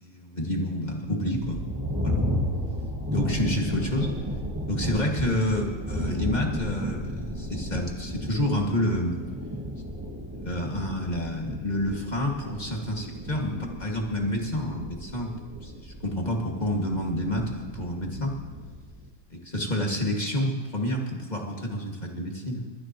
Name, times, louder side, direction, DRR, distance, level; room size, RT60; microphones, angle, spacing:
voice 1, 0.0-1.7 2.0-2.2 3.1-4.1 4.7-9.2 10.4-15.3 15.6-18.3 19.3-22.6, left 1 dB, 25° left, 0 dB, 2.2 m, -29 dB
sound 1, 1.1-19.1, equal, 15° right, 2.0 m, -33 dB
29.0 x 14.0 x 3.1 m, 1.4 s
omnidirectional pair, 1.7 m